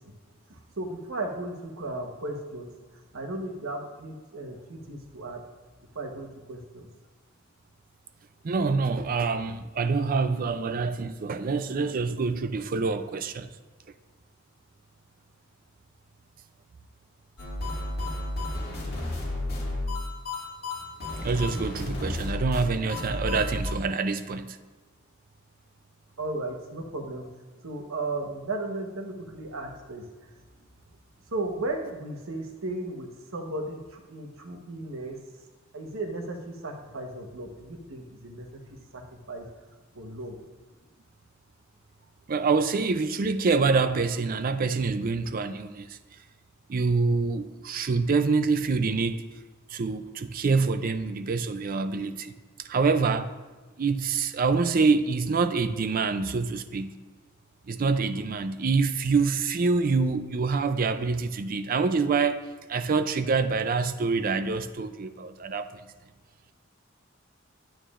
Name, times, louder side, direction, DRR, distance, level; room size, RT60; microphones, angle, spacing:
voice 1, 0.5-2.7 3.1-5.4 5.9-6.9 26.2-27.3 27.6-30.3 31.3-35.2 35.7-39.5 39.9-40.4, right 2 dB, 80° right, 1.1 m, -35 dB
voice 2, 8.4-13.5 21.2-24.6 42.3-46.0 46.7-49.2 49.7-52.3 52.6-53.3 53.8-57.0 57.7-65.8, right 4 dB, 45° right, 0.4 m, -26 dB
sound 1, 17.4-23.7, left 1 dB, 50° left, 2.0 m, -32 dB
9.0 x 9.0 x 2.5 m
head